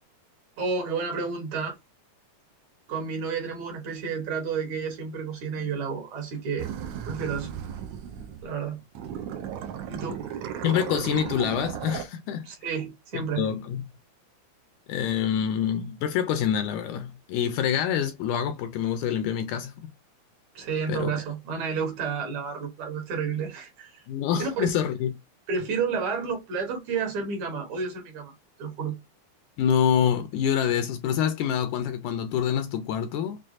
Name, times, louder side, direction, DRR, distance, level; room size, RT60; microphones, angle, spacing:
voice 1, 0.6-1.8 2.9-6.7 7.1-7.5 8.4-8.8 9.9-10.2 12.4-13.5 20.6-24.1 24.4-24.7 25.5-28.3 28.6-28.9, right 5 dB, 65° right, 2.4 m, -30 dB
sound 1, 6.6-8.6 8.9-12.0, right 9 dB, 85° right, 1.5 m, -35 dB
voice 2, 10.6-12.5 13.1-13.9 14.9-19.9 20.9-21.2 24.1-25.1 29.6-33.4, left 8 dB, 80° left, 1.8 m, -26 dB
6.1 x 2.2 x 2.4 m
omnidirectional pair, 3.8 m